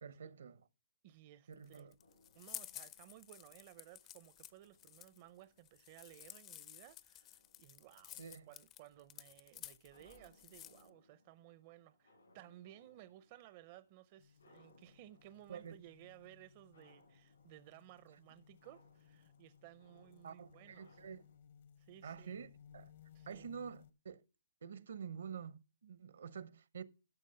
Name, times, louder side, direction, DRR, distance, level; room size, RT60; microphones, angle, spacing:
voice 1, 0.0-0.7 1.5-1.9 8.2-8.5 15.5-15.7 20.2-21.2 22.0-22.9 23.3-24.2 24.6-26.8, right 7 dB, 70° right, 0.9 m, -48 dB
voice 2, 1.0-1.9 2.3-21.0 21.8-22.4 23.1-23.5, right 14 dB, 35° right, 0.5 m, -59 dB
sound 1, 1.5-10.9, left 13 dB, 25° left, 0.4 m, -53 dB
sound 2, 2.0-21.4, left 2 dB, 90° left, 5.6 m, -71 dB
sound 3, 14.2-23.9, left 8 dB, 55° left, 0.8 m, -63 dB
11.5 x 6.2 x 5.5 m
hypercardioid pair, 145°, 0 cm